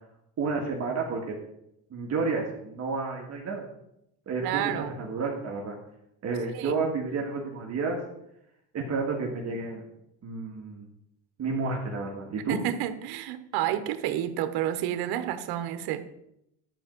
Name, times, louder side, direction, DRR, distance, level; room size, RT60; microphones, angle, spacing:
voice 1, 0.4-1.4 1.9-3.7 4.3-5.8 6.2-8.0 8.7-9.8 10.2-10.9 11.4-12.6, right 4 dB, 40° right, 1.9 m, -31 dB
voice 2, 4.4-5.0 6.5-6.8 12.5-16.1, right 11 dB, 75° right, 1.1 m, -30 dB
12.0 x 4.5 x 7.8 m
cardioid pair, 125°, 38 cm